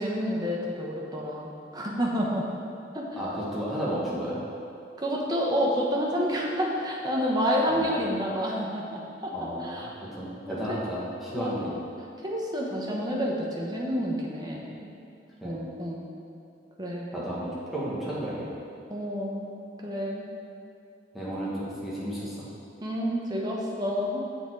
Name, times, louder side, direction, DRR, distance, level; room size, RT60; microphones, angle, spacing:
voice 1, 0.0-2.4 2.9-3.2 5.0-9.9 10.7-10.8 11.4-11.5 12.2-15.0 15.4-16.0 16.8-17.1 18.9-19.5 19.8-20.3 22.8-24.2, equal, 20° right, -2 dB, 1.1 m, -29 dB
voice 2, 3.2-4.4 7.7-7.9 9.3-11.8 15.4-15.6 17.1-18.6 21.1-22.5, equal, ahead, -9 dB, 1.9 m, -33 dB
7.5 x 7.0 x 4.7 m, 2.6 s
head